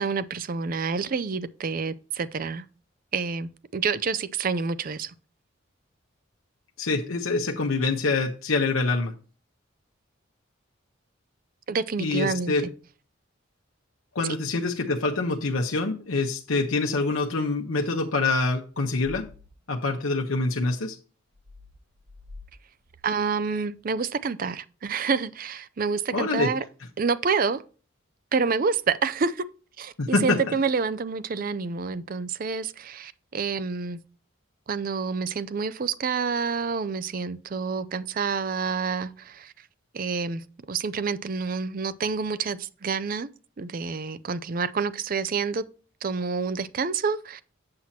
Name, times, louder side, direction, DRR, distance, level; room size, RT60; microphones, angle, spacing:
voice 1, 0.0-2.6 3.1-5.1 11.7-12.7 23.0-26.6 27.0-27.6 28.3-29.4 29.8-34.0 34.7-39.5 39.9-43.3 43.6-45.6 46.0-47.4, right 5 dB, 45° right, 0.4 m, -28 dB
voice 2, 6.8-9.1 12.0-12.6 14.1-19.3 19.7-21.0 26.1-26.5 30.0-30.4, left 3 dB, 90° left, 0.9 m, -25 dB
sound 1, 19.0-19.5 21.3-22.5 22.9-23.0, left 3 dB, 65° right, 1.5 m, -46 dB
7.6 x 7.4 x 2.8 m
head